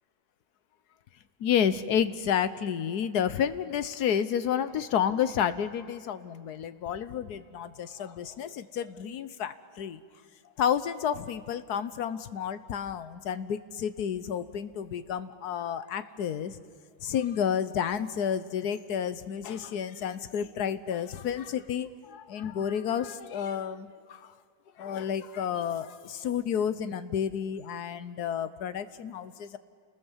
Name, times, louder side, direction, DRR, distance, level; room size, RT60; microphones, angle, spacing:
voice 1, 1.4-10.0 10.6-16.6 17.0-24.3 24.8-29.6, left 8 dB, 75° left, 13 dB, 1.5 m, -30 dB
29.5 x 20.0 x 7.3 m, 2.2 s
omnidirectional pair, 1.7 m